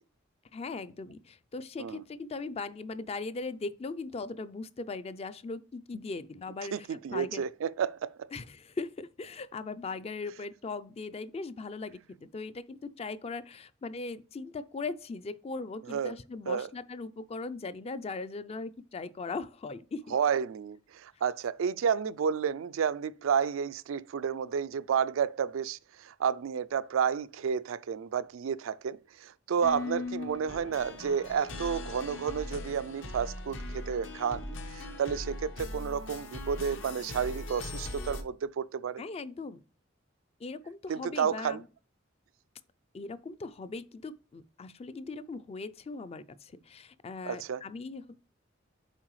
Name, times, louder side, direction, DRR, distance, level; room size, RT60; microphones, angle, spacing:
voice 1, 0.5-7.4 8.3-20.1 39.0-39.6 40.4-41.7 42.9-48.2, left 3 dB, 30° left, 0.4 m, -39 dB
voice 2, 6.7-8.1 15.9-16.1 16.5-16.7 20.1-39.0 40.9-41.6 47.2-47.6, right 7 dB, 85° right, 0.4 m, -31 dB
sound 1, 29.6-38.2, left 2 dB, 70° left, 1.1 m, -40 dB
7.4 x 4.7 x 3.1 m
head